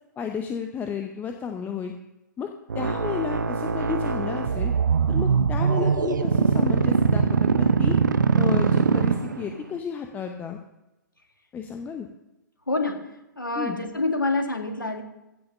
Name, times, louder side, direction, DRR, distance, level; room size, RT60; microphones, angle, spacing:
voice 1, 0.2-1.9 2.4-4.7 5.1-8.0 8.3-10.6 11.5-12.1 13.6-13.8, left 7 dB, 15° left, 5 dB, 0.8 m, -32 dB
sound 1, 2.7-9.6, right 5 dB, 70° right, 0.7 m, -22 dB
voice 2, 12.7-13.1 13.4-15.0, left 2 dB, 80° left, 4 dB, 2.0 m, -26 dB
15.5 x 5.9 x 6.6 m, 0.96 s
figure-of-eight pair, 110°, 11 cm